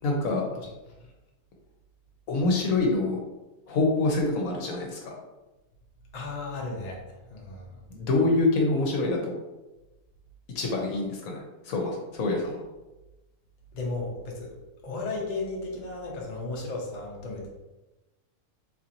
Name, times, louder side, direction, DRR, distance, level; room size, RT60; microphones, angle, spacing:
voice 1, 0.0-0.4 2.3-3.2 3.7-5.1 7.9-9.3 10.5-12.6, left 2 dB, 70° left, 0 dB, 1.1 m, -26 dB
voice 2, 6.1-7.8 13.7-14.5 14.8-17.5, left 3 dB, 40° left, -2 dB, 0.6 m, -35 dB
4.1 x 2.9 x 2.6 m, 1.1 s
omnidirectional pair, 1.6 m